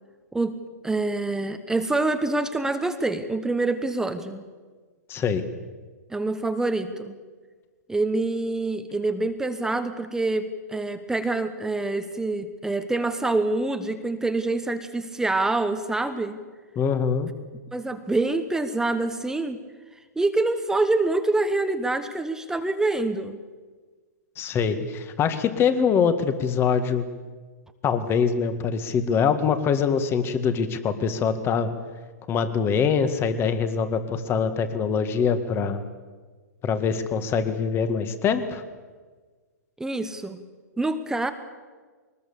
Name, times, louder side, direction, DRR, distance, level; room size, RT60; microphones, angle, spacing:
voice 1, 0.8-4.4 6.1-7.2 7.9-16.4 17.7-19.6 20.2-23.4 39.8-40.4 40.8-41.3, right 2 dB, 5° right, 9 dB, 1.2 m, -26 dB
voice 2, 5.1-5.4 16.8-17.3 24.4-27.0 27.8-31.7 32.3-35.8 36.6-38.6, left 6 dB, 25° left, 10 dB, 1.8 m, -24 dB
22.0 x 20.0 x 7.0 m, 1.4 s
hypercardioid pair, 120°, 9 cm